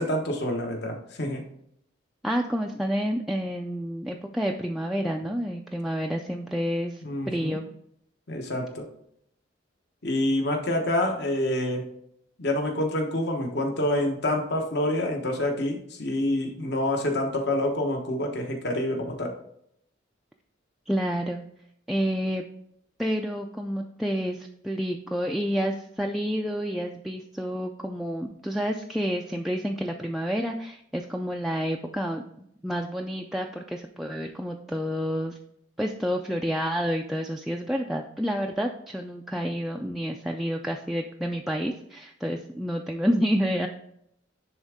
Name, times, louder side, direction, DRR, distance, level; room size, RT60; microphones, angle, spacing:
voice 1, 0.0-1.4 7.0-7.6 8.3-8.9 10.0-11.8 12.4-19.3, left 1 dB, 60° left, 2 dB, 1.2 m, -27 dB
voice 2, 2.2-7.7 20.9-21.4 21.9-22.4 23.0-32.2 32.6-35.4 35.8-43.7, equal, ahead, 1 dB, 0.3 m, -29 dB
10.5 x 3.6 x 3.6 m, 0.73 s
head